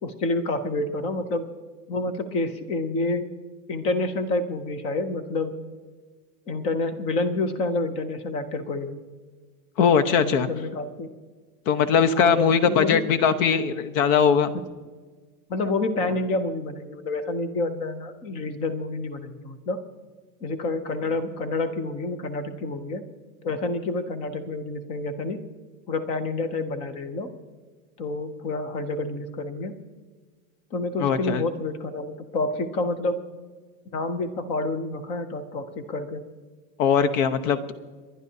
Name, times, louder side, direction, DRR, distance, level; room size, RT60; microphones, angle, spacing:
voice 1, 0.0-1.5 1.9-3.3 3.7-5.5 6.5-9.0 10.2-11.1 12.1-13.0 15.5-19.8 20.4-23.1 23.4-25.4 25.9-27.3 28.0-29.8 30.7-33.2 33.9-36.2, left 2 dB, 15° left, 11 dB, 0.3 m, -28 dB
voice 2, 9.8-10.5 11.7-14.5 31.0-31.4 36.8-37.7, left 6 dB, 60° left, 11 dB, 1.1 m, -20 dB
30.0 x 11.0 x 2.7 m, 1.4 s
supercardioid pair, 155°, 45 cm